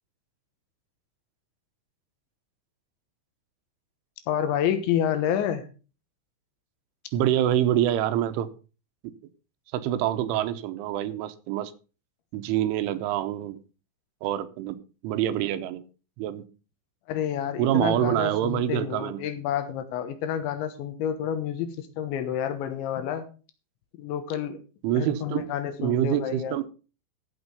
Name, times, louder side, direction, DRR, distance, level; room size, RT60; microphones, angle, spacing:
voice 1, 4.3-5.7 17.1-23.3 24.0-24.6 24.9-26.6, left 9 dB, 75° left, 9 dB, 3.4 m, -29 dB
voice 2, 7.1-8.5 9.0-9.1 9.7-11.7 12.3-13.6 14.2-14.8 15.0-15.8 16.2-16.4 17.6-19.2 24.8-25.4 25.8-26.7, right 11 dB, 85° right, 12 dB, 3.3 m, -26 dB
14.0 x 6.5 x 5.2 m, 0.35 s
omnidirectional pair, 5.6 m